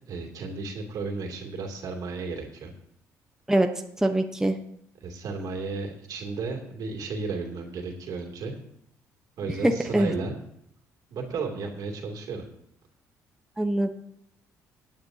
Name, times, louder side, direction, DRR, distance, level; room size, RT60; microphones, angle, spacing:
voice 1, 0.0-2.7 5.0-8.6 9.4-10.4 11.1-12.4, right 4 dB, 65° right, 3 dB, 2.7 m, -33 dB
voice 2, 4.0-4.6 9.6-10.1 13.6-13.9, right 1 dB, 5° right, 5 dB, 1.0 m, -23 dB
18.0 x 9.3 x 2.8 m, 0.72 s
supercardioid pair, 65°, 7 cm